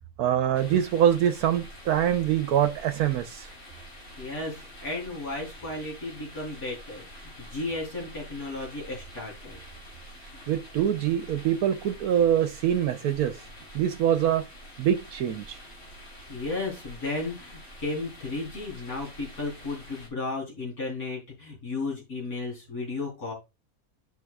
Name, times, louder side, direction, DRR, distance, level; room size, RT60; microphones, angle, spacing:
voice 1, 0.2-3.5 10.5-13.4 13.7-14.5 14.8-15.6, right 10 dB, 85° right, 1.2 m, -24 dB
sound 1, 0.5-20.1, equal, 45° left, 4.0 m, -47 dB
voice 2, 4.2-9.6 16.3-23.3, left 2 dB, 75° left, 4.1 m, -34 dB
12.0 x 4.7 x 2.3 m
omnidirectional pair, 1.6 m